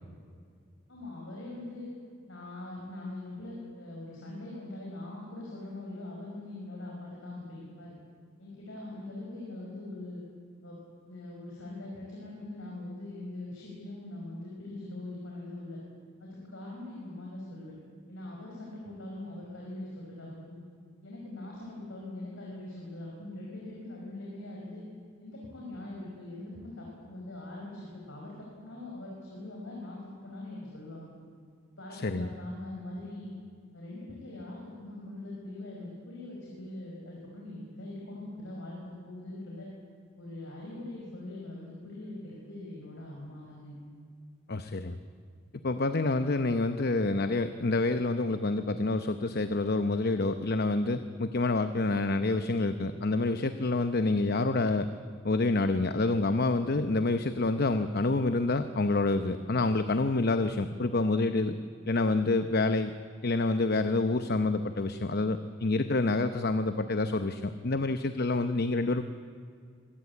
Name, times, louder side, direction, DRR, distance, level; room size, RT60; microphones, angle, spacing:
voice 1, 0.9-1.9 2.3-7.9 8.4-10.2 10.6-10.8 11.1-15.8 16.2-17.7 18.1-20.6 21.0-24.8 25.2-28.3 28.6-31.1 31.8-33.3 33.7-39.7 40.2-43.8, left 1 dB, 80° left, -3 dB, 5.4 m, -42 dB
voice 2, 31.9-32.3 44.5-45.0 45.6-54.9 55.2-61.6 61.9-62.9 63.2-69.0, left 2 dB, 55° left, 10 dB, 0.8 m, -27 dB
24.0 x 18.0 x 8.5 m, 2.2 s
head